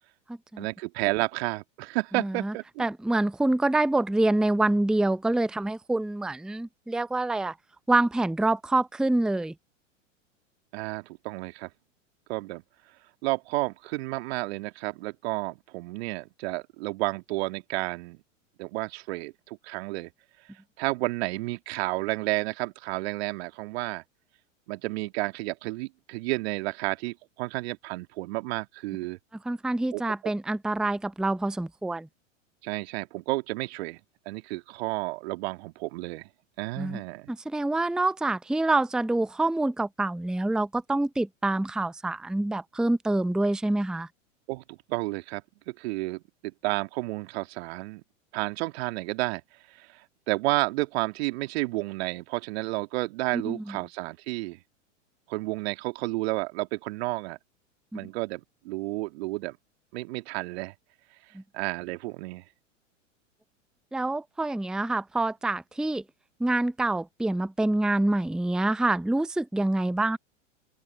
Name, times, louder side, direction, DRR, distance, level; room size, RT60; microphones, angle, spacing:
voice 1, 0.6-2.9 10.7-11.7 12.3-12.6 13.2-18.2 18.6-20.1 20.8-24.0 24.7-29.2 29.9-30.0 32.6-34.0 34.3-36.2 36.6-37.3 44.5-48.0 48.3-49.4 49.8-50.0 50.3-54.6 55.3-57.4 57.9-59.6 59.9-60.7 61.5-62.4, right 21 dB, 55° right, 2.5 m, -31 dB
voice 2, 2.1-2.5 2.8-7.5 7.9-9.5 29.4-32.1 36.8-37.0 37.3-44.1 53.3-53.8 57.9-58.0 61.3-61.4 63.9-66.0 66.4-70.2, right 2 dB, ahead, 0.8 m, -26 dB
open air
figure-of-eight pair, 95°, 38 cm